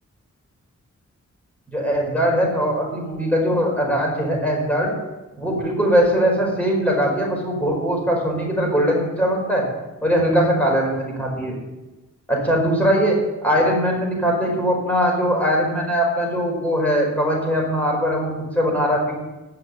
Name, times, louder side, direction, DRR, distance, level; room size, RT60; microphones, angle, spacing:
voice 1, 1.7-4.9 5.4-9.7 10.0-11.6 12.3-19.1, equal, 5° left, -2 dB, 5.1 m, -21 dB
16.0 x 6.0 x 9.5 m, 1.1 s
wide cardioid pair, 140°, 29 cm